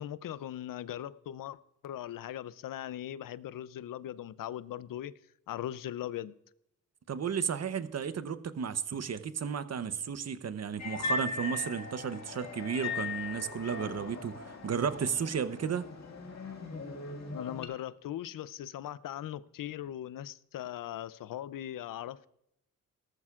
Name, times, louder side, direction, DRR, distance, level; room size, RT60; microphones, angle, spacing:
voice 1, 0.0-1.6 1.8-5.1 5.5-6.3 17.3-22.3, left 12 dB, 80° left, 0.6 m, -39 dB
voice 2, 7.1-15.8, right 7 dB, 50° right, 0.8 m, -33 dB
sound 1, 10.8-17.7, left 4 dB, 55° left, 2.0 m, -39 dB
18.0 x 13.5 x 2.4 m
cardioid pair, 70°, 33 cm